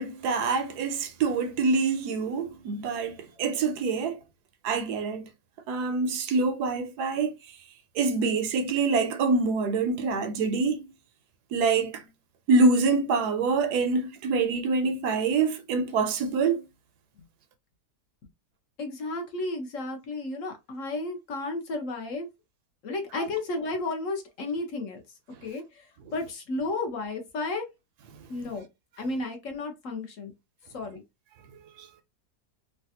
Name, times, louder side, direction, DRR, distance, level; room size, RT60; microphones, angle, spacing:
voice 1, 0.0-4.2 4.6-5.3 5.7-7.4 8.0-10.8 11.5-12.0 12.5-16.6 31.8-31.9, right 4 dB, 75° right, 1.1 m, -25 dB
voice 2, 18.8-22.3 22.8-25.0 25.4-27.7 28.3-28.6 29.0-30.3 30.7-31.0, left 2 dB, 60° left, 1.0 m, -33 dB
3.2 x 2.3 x 2.7 m
omnidirectional pair, 1.8 m